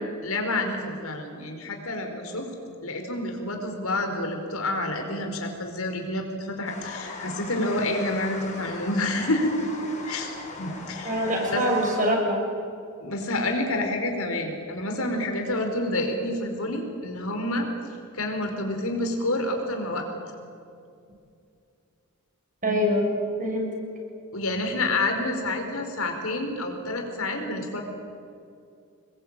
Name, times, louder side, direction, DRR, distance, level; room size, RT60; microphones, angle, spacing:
voice 1, 0.2-2.5 2.8-9.7 10.0-11.6 13.0-17.7 18.1-20.0 24.3-27.8, left 2 dB, 80° left, 4 dB, 4.6 m, -28 dB
sound 1, 6.7-12.0, left 3 dB, 35° left, 6.3 m, -39 dB
voice 2, 11.1-12.4 22.6-23.1 23.4-23.8, equal, 35° right, 0 dB, 7.0 m, -24 dB
27.0 x 22.0 x 8.8 m, 2.5 s
head